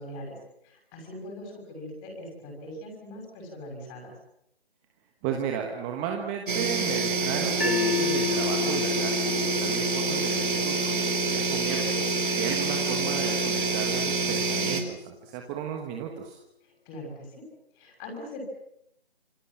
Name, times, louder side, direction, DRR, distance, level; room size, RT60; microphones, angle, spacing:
voice 1, 0.0-4.1 16.6-17.5 17.7-18.4, left 1 dB, 15° left, 2 dB, 6.3 m, -41 dB
voice 2, 5.2-16.4, right 8 dB, 10° right, 2 dB, 1.3 m, -34 dB
sound 1, 6.5-14.8, right 3 dB, 55° right, 4.3 m, -27 dB
sound 2, 7.6-13.8, left 7 dB, 65° left, 2.7 m, -33 dB
27.5 x 24.5 x 7.5 m, 0.78 s
figure-of-eight pair, 155°, 31 cm